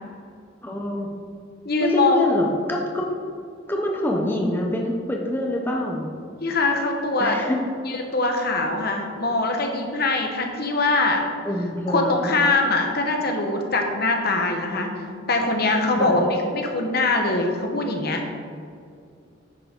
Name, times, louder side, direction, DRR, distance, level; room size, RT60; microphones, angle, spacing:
voice 1, 0.6-1.1 1.8-3.1 3.7-6.1 7.2-7.6 11.4-12.3 16.0-16.2, left 1 dB, 10° left, -1 dB, 0.8 m, -25 dB
voice 2, 1.6-2.2 6.4-7.4 7.8-11.2 11.9-18.2, left 2 dB, 55° left, 3 dB, 1.2 m, -23 dB
9.7 x 7.6 x 3.7 m, 2.3 s
head